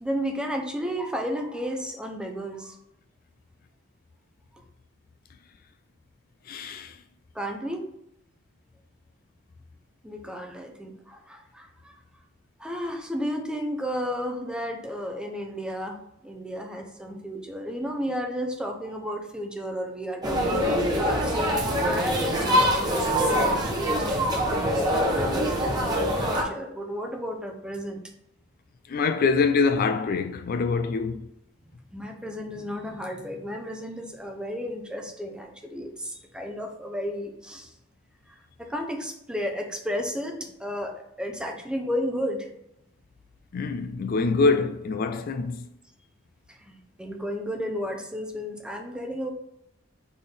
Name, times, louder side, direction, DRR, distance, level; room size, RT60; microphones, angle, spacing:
voice 1, 0.0-2.8 7.3-7.9 10.0-11.9 12.6-21.4 21.8-28.0 31.9-37.7 38.3-42.5 46.5-49.3, equal, 5° right, 0.6 m, -33 dB
voice 2, 6.5-7.0 28.9-31.3 43.5-45.6, left 4 dB, 50° left, 0.3 m, -24 dB
sound 1, 20.2-26.4, equal, 20° right, 1.0 m, -24 dB
4.1 x 3.6 x 3.4 m
head